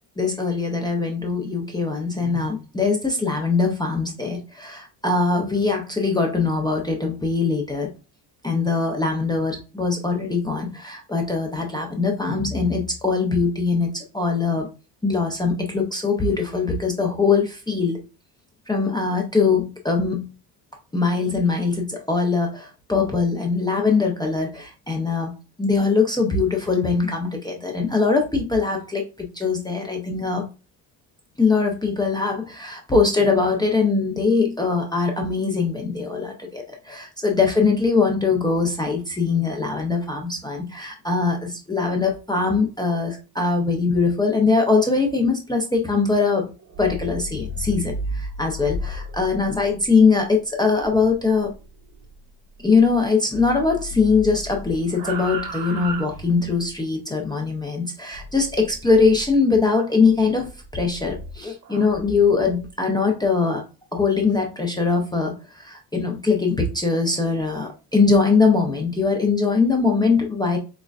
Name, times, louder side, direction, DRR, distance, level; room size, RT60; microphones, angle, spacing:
voice 1, 0.2-7.9 8.4-14.7 15.0-18.0 18.7-20.3 20.9-25.3 25.6-30.4 31.4-46.5 46.8-51.5 52.6-63.6 63.9-70.6, left 4 dB, 10° left, 0 dB, 0.5 m, -22 dB
sound 1, 46.6-53.1 53.3-56.7 58.1-59.4 60.0-62.7, equal, 40° right, 1.3 m, -35 dB
6.3 x 2.3 x 2.3 m, 0.31 s
cardioid pair, 135°, 48 cm